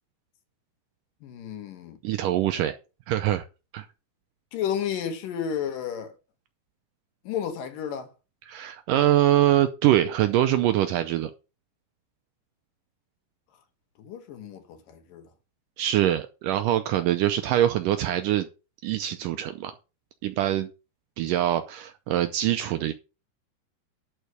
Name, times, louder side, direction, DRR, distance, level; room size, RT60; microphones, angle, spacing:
voice 1, 1.2-2.0 4.5-6.1 7.3-8.1 14.0-15.2, left 8 dB, 70° left, 2.7 m, -32 dB
voice 2, 2.0-2.8 3.1-3.4 3.7-3.9 8.5-11.3 15.8-18.5 18.8-19.7 20.2-20.7 21.2-22.9, right 12 dB, 80° right, 2.0 m, -23 dB
11.0 x 4.6 x 6.6 m
omnidirectional pair, 4.4 m